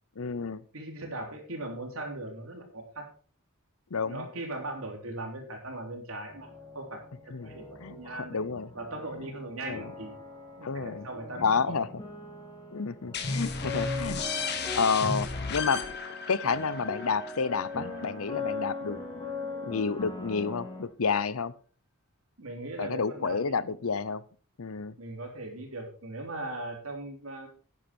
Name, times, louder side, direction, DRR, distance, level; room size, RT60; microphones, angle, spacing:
voice 1, 0.2-0.6 3.9-4.3 7.3-7.5 7.8-8.7 9.6-9.9 10.6-11.1 11.4-11.9 12.7-14.2 14.8-15.9 16.3-19.0 19.6-21.5 22.8-24.2 24.6-25.0, left 5 dB, 70° left, 18 dB, 0.7 m, -30 dB
voice 2, 0.7-3.0 4.0-7.0 7.4-8.4 8.7-10.1 10.6-11.9 22.4-23.4 25.0-27.5, right 2 dB, 65° right, 3 dB, 3.3 m, -39 dB
sound 1, 6.3-20.8, left 3 dB, 20° left, 2.5 m, -40 dB
sound 2, 13.1-18.6, left 4 dB, 50° left, 1.7 m, -34 dB
11.5 x 9.7 x 4.4 m, 0.40 s
head